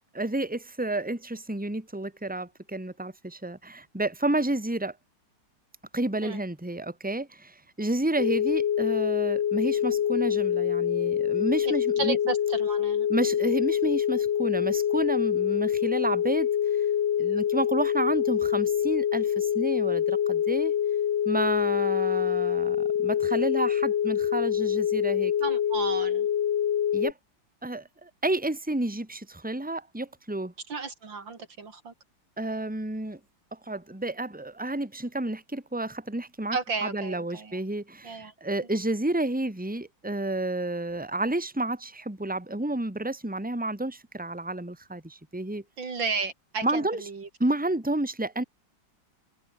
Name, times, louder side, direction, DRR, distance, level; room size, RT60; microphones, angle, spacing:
voice 1, 0.1-5.0 5.9-12.2 13.1-16.9 17.2-20.7 21.2-25.3 26.9-27.1 27.6-30.5 32.4-33.2 33.5-36.6 36.8-45.6 46.6-47.0 47.4-48.4, right 2 dB, 5° right, 2.8 m, -30 dB
sound 1, 8.2-27.1, left 9 dB, 70° left, 1.9 m, -25 dB
voice 2, 11.6-13.1 25.4-26.3 30.7-31.9 36.5-37.6 38.0-38.3 45.8-47.3, right 4 dB, 70° right, 3.6 m, -33 dB
omnidirectional pair, 2.2 m